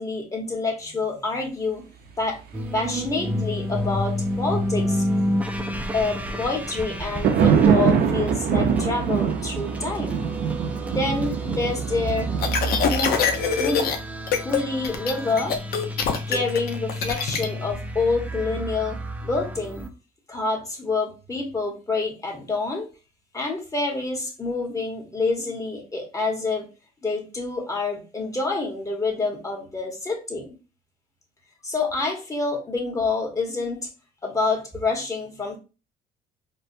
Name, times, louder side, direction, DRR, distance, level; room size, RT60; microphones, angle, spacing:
voice 1, 0.0-1.8 2.2-2.4 2.7-5.0 5.9-10.2 10.9-12.3 12.8-13.1 13.5-13.8 14.4-15.6 16.3-19.8 20.3-22.9 23.3-26.7 27.0-30.6 31.6-33.9 34.2-35.6, left 3 dB, 20° left, 0 dB, 1.1 m, -27 dB
sound 1, 2.5-19.9, equal, 10° right, 0.4 m, -30 dB
sound 2, 6.9-13.9, right 7 dB, 65° right, 0.6 m, -24 dB
sound 3, 12.4-14.0 14.3-14.6 14.8-17.5, left 6 dB, 65° left, 0.6 m, -24 dB
4.4 x 2.1 x 2.6 m, 0.32 s
cardioid pair, 110°, 17 cm